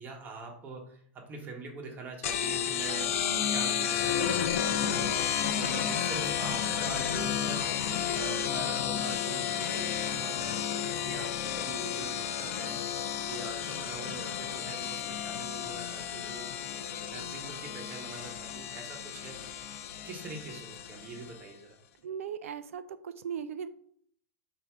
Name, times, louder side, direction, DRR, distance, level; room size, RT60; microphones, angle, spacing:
voice 1, 0.0-12.8 13.3-16.5 17.1-19.4 20.0-21.8, right 3 dB, 25° right, 1 dB, 0.9 m, -44 dB
sound 1, 2.2-21.4, left 9 dB, 80° left, 0.4 m, -32 dB
voice 2, 22.0-23.7, right 8 dB, 85° right, 12 dB, 0.4 m, -38 dB
3.4 x 2.6 x 4.4 m, 0.62 s
hypercardioid pair, 125°, 7 cm